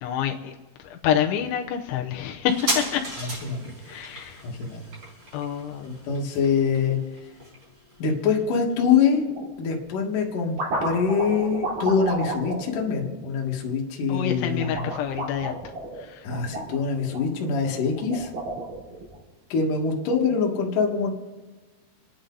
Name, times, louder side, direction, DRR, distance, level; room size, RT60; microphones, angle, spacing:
voice 1, 0.0-3.4 3.8-4.4 5.3-5.9 14.1-15.5 15.9-16.3, left 9 dB, 80° left, 2 dB, 3.3 m, -28 dB
sound 1, 2.5-9.6 9.8-9.9, right 1 dB, 20° right, 5.6 m, -35 dB
voice 2, 4.4-4.8 5.8-7.0 8.0-14.9 16.2-18.3 19.5-21.1, left 5 dB, 55° left, 0 dB, 3.0 m, -24 dB
sound 2, 9.2-9.5 10.2-13.7 14.5-17.2 17.8-19.2, right 2 dB, 50° right, 4.4 m, -33 dB
29.0 x 10.0 x 4.0 m, 1.3 s
omnidirectional pair, 5.3 m